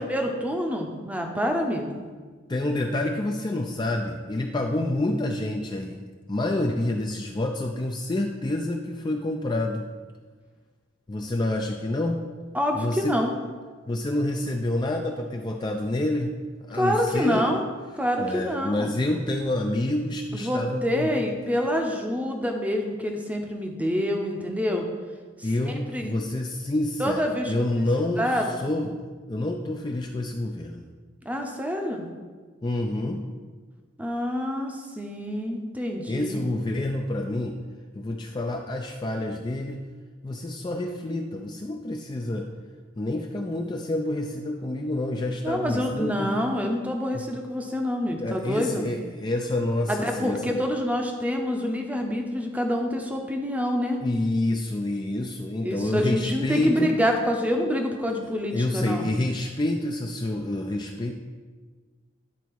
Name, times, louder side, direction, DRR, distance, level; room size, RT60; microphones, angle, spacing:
voice 1, 0.0-2.0 12.5-13.3 16.7-17.6 17.9-18.9 20.3-24.9 25.6-26.1 27.0-27.5 28.2-28.7 31.2-32.1 34.0-36.4 45.4-48.9 49.9-54.0 55.6-59.1, equal, 10° right, 2 dB, 0.7 m, -27 dB
voice 2, 2.5-9.9 11.1-12.2 12.7-13.3 13.9-17.5 18.2-21.1 25.4-29.0 29.3-30.9 32.6-33.3 36.1-37.6 37.9-39.8 40.2-42.5 43.0-46.3 48.1-50.6 54.0-56.9 58.5-61.1, left 1 dB, 20° left, 2 dB, 0.4 m, -28 dB
10.0 x 4.0 x 4.6 m, 1.5 s
head